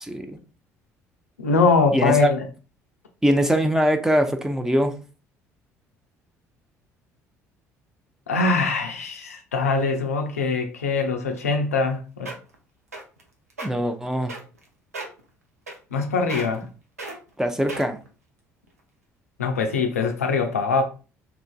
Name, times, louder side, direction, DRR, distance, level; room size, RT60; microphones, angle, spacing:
voice 1, 0.0-0.4 1.9-2.3 3.2-4.9 13.6-14.3 17.4-18.0, equal, 5° right, 0.5 m, -22 dB
voice 2, 1.4-2.5 8.3-12.3 15.9-16.7 19.4-20.8, left 4 dB, 80° left, 0.3 m, -22 dB
sound 1, 11.9-12.0 12.3-12.6 12.9-13.2 13.5-13.7 14.3-14.6 14.9-15.2 15.7-16.0 16.3-16.7 17.0-17.2 17.7-18.1 18.7-18.8, right 2 dB, 85° right, 0.4 m, -34 dB
2.8 x 2.5 x 2.2 m
figure-of-eight pair, 55°, 8 cm